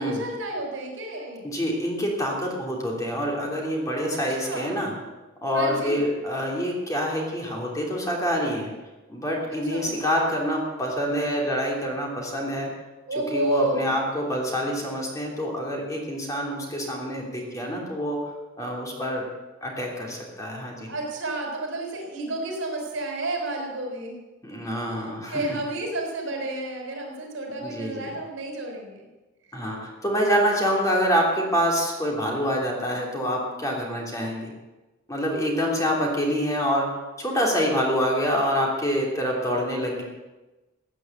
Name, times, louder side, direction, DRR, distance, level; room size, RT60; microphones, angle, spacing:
voice 1, 0.0-1.5 4.1-4.8 5.5-6.0 9.5-10.0 13.1-13.9 20.8-24.2 24.8-29.0, right 1 dB, 70° right, 1 dB, 5.2 m, -31 dB
voice 2, 1.4-4.9 5.4-8.7 9.1-12.7 13.3-18.2 18.6-19.2 19.6-20.9 24.4-25.4 27.6-28.1 29.5-34.5 35.1-36.9 37.2-40.0, equal, 15° left, -1 dB, 3.1 m, -26 dB
16.0 x 9.2 x 7.9 m, 1.1 s
head